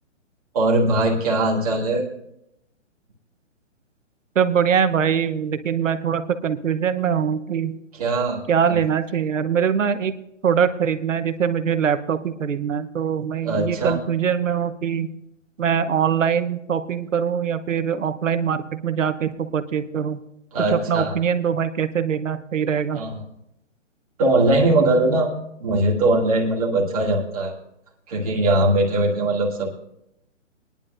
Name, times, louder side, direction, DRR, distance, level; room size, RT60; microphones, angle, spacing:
voice 1, 0.5-2.0 7.9-8.4 8.7-8.8 13.4-14.0 20.5-21.1 22.9-23.2 24.2-25.3 25.6-27.5 28.1-29.7, right 2 dB, 30° right, -4 dB, 2.0 m, -20 dB
voice 2, 4.3-7.7 8.5-10.1 10.4-15.1 15.6-20.2 20.7-23.0, right 7 dB, 75° right, 10 dB, 1.0 m, -22 dB
21.5 x 10.5 x 2.5 m, 0.80 s
hypercardioid pair, 180°, 38 cm